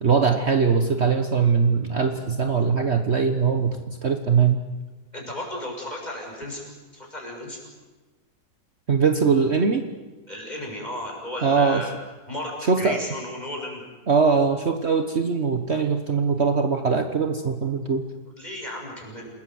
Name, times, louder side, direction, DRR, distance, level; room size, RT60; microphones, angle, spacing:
voice 1, 0.0-4.6 8.9-9.8 11.4-11.9 12.7-13.0 14.1-18.0, right 5 dB, 45° right, 6 dB, 1.5 m, -21 dB
voice 2, 5.1-6.6 6.9-7.6 10.3-11.9 12.3-13.8 18.4-19.3, left 1 dB, 25° left, -1 dB, 7.0 m, -34 dB
29.0 x 20.0 x 7.9 m, 1.2 s
omnidirectional pair, 1.7 m